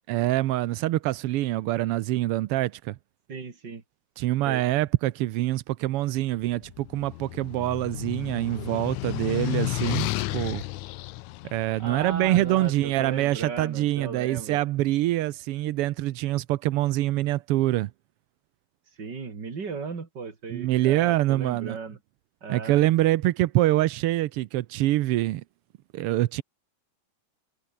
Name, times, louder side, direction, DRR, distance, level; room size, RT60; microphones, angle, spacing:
voice 1, 0.1-3.0 4.2-10.6 11.5-17.9 20.5-21.8 22.5-25.4 25.9-26.4, right 15 dB, 75° right, 1.3 m, -25 dB
voice 2, 3.3-3.8 4.4-4.6 11.8-14.6 19.0-22.0 22.4-22.8, right 5 dB, 35° right, 3.3 m, -36 dB
sound 1, 6.6-12.8, left 18 dB, 85° left, 2.0 m, -32 dB
omnidirectional pair, 3.4 m